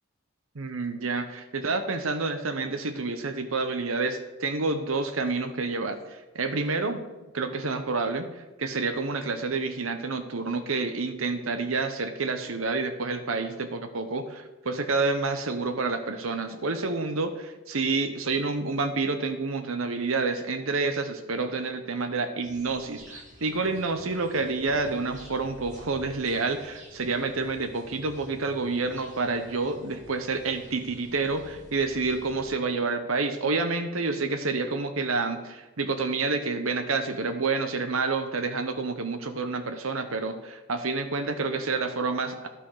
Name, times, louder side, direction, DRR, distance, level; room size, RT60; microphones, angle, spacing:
voice 1, 0.5-7.0 7.3-8.3 8.6-42.5, right 3 dB, 85° right, 8 dB, 1.0 m, -29 dB
sound 1, 22.4-32.5, equal, 35° right, 1.9 m, -50 dB
11.0 x 5.9 x 4.9 m, 1.1 s
head